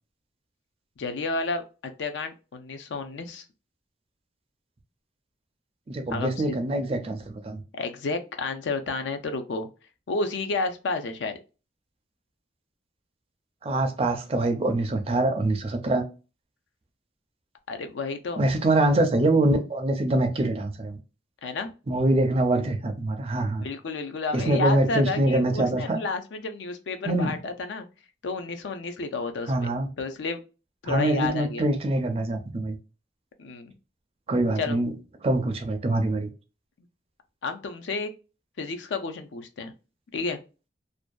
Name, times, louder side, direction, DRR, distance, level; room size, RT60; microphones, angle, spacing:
voice 1, 1.0-3.4 6.1-6.5 7.7-9.7 10.1-11.4 17.7-18.4 21.4-21.7 23.6-27.9 28.2-29.7 30.0-30.4 30.8-31.7 33.4-33.7 34.6-34.8 37.4-38.1 38.6-39.7 40.1-40.4, left 3 dB, 75° left, 0.4 m, -31 dB
voice 2, 5.9-7.6 13.6-16.1 18.4-21.0 21.9-23.7 24.3-26.0 27.1-27.4 29.5-29.9 30.8-32.8 34.3-34.9 35.2-36.3, right 2 dB, 30° right, 0.4 m, -24 dB
2.5 x 2.1 x 2.2 m
head